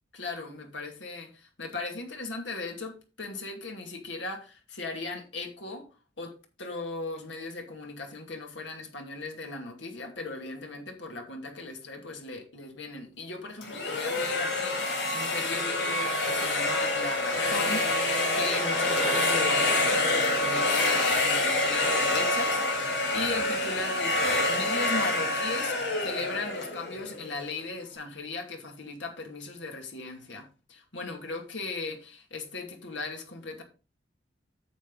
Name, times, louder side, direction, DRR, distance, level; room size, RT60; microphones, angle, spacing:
voice 1, 0.1-5.9 6.2-33.6, left 3 dB, 85° left, 2.4 m, -37 dB
sound 1, 13.6-27.5, left 2 dB, 70° left, 3.8 m, -27 dB
Wind instrument woodwind instrument, 17.3-20.8, right 2 dB, 45° right, 3.0 m, -41 dB
9.2 x 6.8 x 4.1 m
head